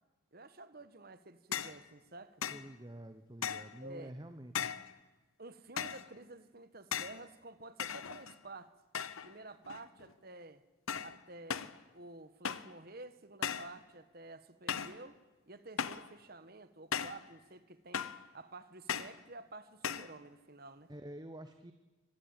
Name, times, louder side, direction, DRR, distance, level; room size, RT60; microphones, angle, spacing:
voice 1, 0.3-2.4 3.8-4.1 5.4-8.7 9.2-10.6 11.0-15.2 15.5-18.1 18.3-20.9, right 2 dB, 45° right, 1.3 m, -51 dB
sound 1, 1.5-1.8 2.4-2.7 3.4-3.8 4.5-4.9 5.8-6.1 6.9-7.2 7.8-8.4 8.9-9.3 9.6-10.1 10.9-11.2 11.5-11.8 12.4-12.8 13.4-13.8 14.7-15.0 15.8-16.1 16.9-17.3 17.9-18.3 18.9-19.2 19.8-20.1, left 7 dB, 85° left, 1.0 m, -38 dB
voice 2, 2.5-4.7 20.9-21.7, right 1 dB, 20° right, 1.0 m, -48 dB
24.5 x 19.5 x 9.0 m
head